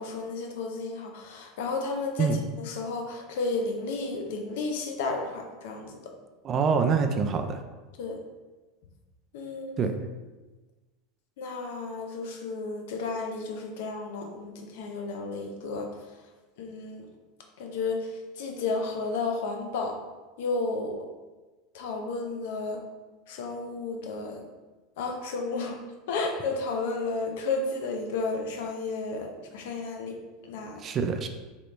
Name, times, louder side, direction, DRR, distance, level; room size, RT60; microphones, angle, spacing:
voice 1, 0.0-6.1 8.0-8.2 9.3-10.0 11.4-15.9 16.6-17.1 17.6-20.0 20.4-21.0 21.7-22.8 23.3-24.4 25.0-25.8 26.1-30.2 30.4-30.8, left 3 dB, 75° left, 2 dB, 0.6 m, -32 dB
voice 2, 6.4-7.6 9.8-9.9 30.8-31.3, right 5 dB, 35° right, 6 dB, 0.4 m, -25 dB
3.0 x 2.9 x 3.2 m, 1.2 s
hypercardioid pair, 100°, 0 cm